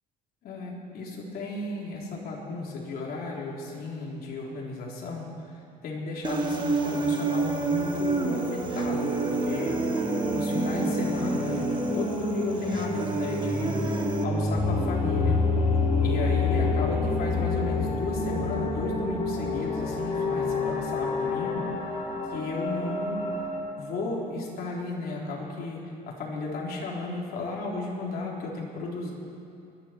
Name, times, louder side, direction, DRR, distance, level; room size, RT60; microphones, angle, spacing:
voice 1, 0.4-10.1 10.3-15.5 16.0-21.6 22.3-23.2 23.8-29.1, left 3 dB, 65° left, -3 dB, 3.7 m, -34 dB
Human voice, 6.2-14.2, right 3 dB, 25° right, 1.5 m, -29 dB
Singing / Musical instrument, 6.4-19.0, right 1 dB, 10° right, 3.7 m, -43 dB
sound 1, 7.6-23.6, left 3 dB, 45° left, 2.6 m, -29 dB
23.5 x 11.0 x 4.5 m, 2.6 s
cardioid pair, 110°, 17 cm